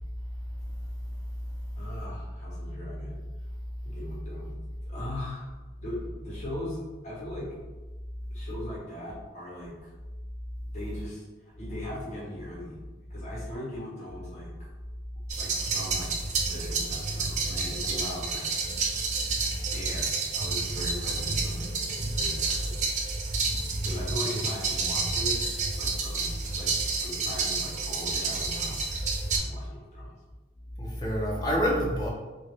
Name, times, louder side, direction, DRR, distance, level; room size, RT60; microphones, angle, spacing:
voice 1, 1.8-3.2 3.8-4.5 4.9-5.5 5.8-7.5 8.3-9.9 10.7-12.8 13.1-14.5 15.4-16.1 16.5-18.5 19.7-21.7 22.1-22.8 23.8-25.4 25.7-26.3 26.5-26.7 27.0-28.8 29.3-30.2, left 1 dB, 40° left, -8 dB, 1.1 m, -39 dB
sound 1, 15.3-29.4, right 4 dB, 40° right, 0.4 m, -30 dB
voice 2, 19.3-19.7 30.8-32.1, equal, 25° left, -3 dB, 0.6 m, -28 dB
2.9 x 2.6 x 3.2 m, 1.2 s
head